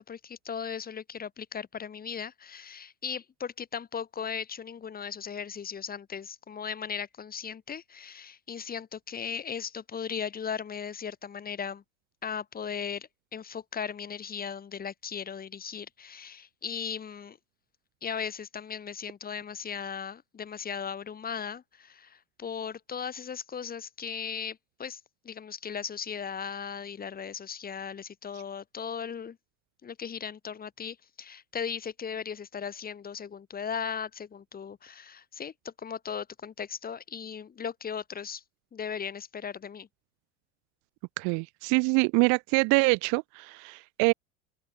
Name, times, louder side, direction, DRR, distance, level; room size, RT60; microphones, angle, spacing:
voice 1, 0.0-11.8 12.2-17.4 18.0-25.0 25.2-29.4 29.8-38.4 38.7-39.9, left 7 dB, 20° left, 1.3 m, -37 dB
voice 2, 41.2-44.1, right 31 dB, 45° right, 0.4 m, -25 dB
open air
hypercardioid pair, 95°, 42 cm